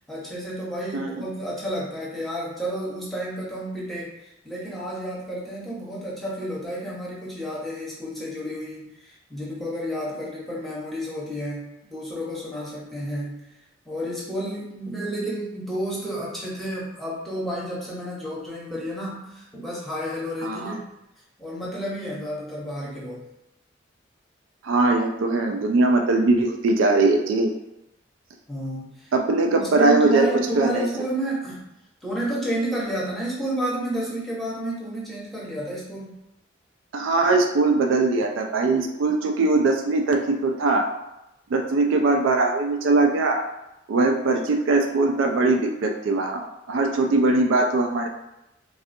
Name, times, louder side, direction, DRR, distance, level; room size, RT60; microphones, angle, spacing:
voice 1, 0.1-13.4 13.9-20.9 21.4-23.2 28.5-29.1 29.6-31.6 32.0-36.1, right 1 dB, ahead, -7 dB, 0.8 m, -31 dB
voice 2, 0.9-1.3 20.4-20.7 24.6-27.5 29.1-30.3 30.6-30.9 36.9-40.9 41.5-43.4 43.9-48.1, right 3 dB, 70° right, 3 dB, 0.3 m, -21 dB
3.6 x 2.4 x 2.6 m, 0.90 s
head